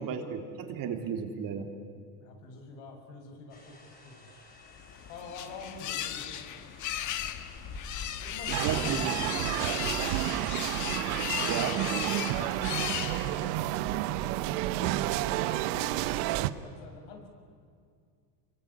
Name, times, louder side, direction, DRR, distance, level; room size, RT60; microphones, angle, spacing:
voice 1, 0.0-1.7 8.5-9.1 11.5-11.7, right 7 dB, 45° right, 5 dB, 3.3 m, -33 dB
voice 2, 2.2-4.3 5.1-6.5 8.2-10.7 11.3-17.3, left 3 dB, 75° left, 4 dB, 7.1 m, -47 dB
sound 1, 3.5-8.6, left 2 dB, 20° left, 6.8 m, -52 dB
sound 2, 4.8-13.6, left 10 dB, 40° left, 1.5 m, -36 dB
sound 3, 8.5-16.5, right 15 dB, 75° right, 1.2 m, -30 dB
26.5 x 23.0 x 9.8 m, 2.2 s
cardioid pair, 135°, 46 cm